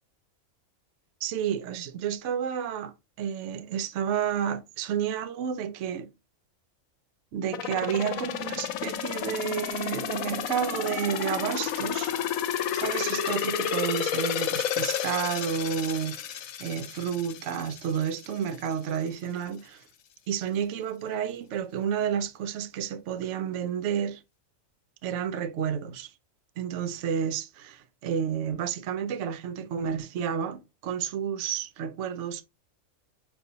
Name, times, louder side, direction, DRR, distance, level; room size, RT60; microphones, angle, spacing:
voice 1, 1.2-6.1 7.3-12.1 12.5-19.8 20.3-24.2 25.0-26.1 26.6-32.4, right 8 dB, 65° right, 0.9 m, -31 dB
sound 1, 7.5-18.3 18.7-18.8, left 9 dB, 85° left, 1.0 m, -31 dB
6.6 x 2.6 x 2.7 m
omnidirectional pair, 1.4 m